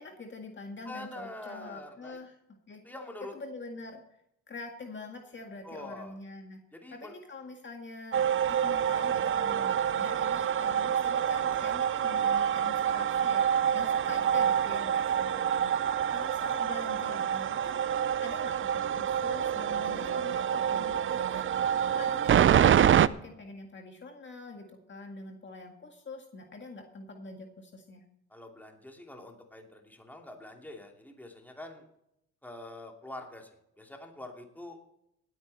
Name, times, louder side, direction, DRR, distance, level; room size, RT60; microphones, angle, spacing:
voice 1, 0.0-2.4 2.7-2.8 3.3-4.0 4.5-6.6 6.9-13.5 13.7-28.0, left 3 dB, 40° left, 3 dB, 1.9 m, -45 dB
voice 2, 0.8-2.2 2.8-3.3 5.6-6.2 6.7-7.1 28.3-31.9 32.4-33.5 33.8-34.9, left 1 dB, 5° left, 2 dB, 2.8 m, -45 dB
sound 1, 8.1-23.1, right 9 dB, 45° right, 0.5 m, -27 dB
18.5 x 9.3 x 4.2 m, 0.79 s
cardioid pair, 90°, 30 cm